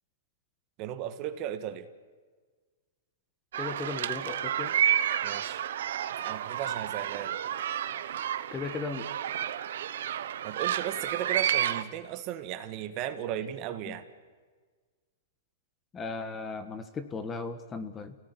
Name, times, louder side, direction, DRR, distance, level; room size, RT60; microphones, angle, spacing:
voice 1, 0.8-1.9 5.2-5.6 6.2-7.4 10.4-14.1, right 11 dB, 35° right, 10 dB, 1.7 m, -36 dB
sound 1, 3.5-11.8, right 10 dB, 70° right, 1.2 m, -30 dB
voice 2, 3.6-4.7 8.5-9.1 13.9-14.0 15.9-18.1, left 4 dB, 15° left, 10 dB, 1.4 m, -36 dB
28.5 x 18.0 x 9.8 m, 1.5 s
hypercardioid pair, 150°, 0 cm